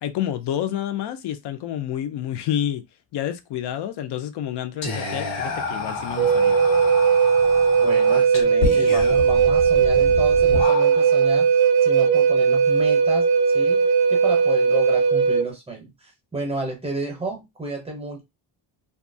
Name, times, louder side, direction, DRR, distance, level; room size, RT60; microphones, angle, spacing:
voice 1, 0.0-2.8 3.1-6.6, left 10 dB, 65° left, 0.5 m, -29 dB
Whispering, 4.8-11.3, left 4 dB, 80° left, 1.2 m, -30 dB
Wind instrument woodwind instrument, 6.2-15.5, right 6 dB, 55° right, 0.5 m, -18 dB
voice 2, 7.8-11.5 11.8-13.8 14.1-18.2, right 2 dB, 15° right, 0.6 m, -31 dB
2.7 x 2.3 x 2.6 m
wide cardioid pair, 180°, 45 cm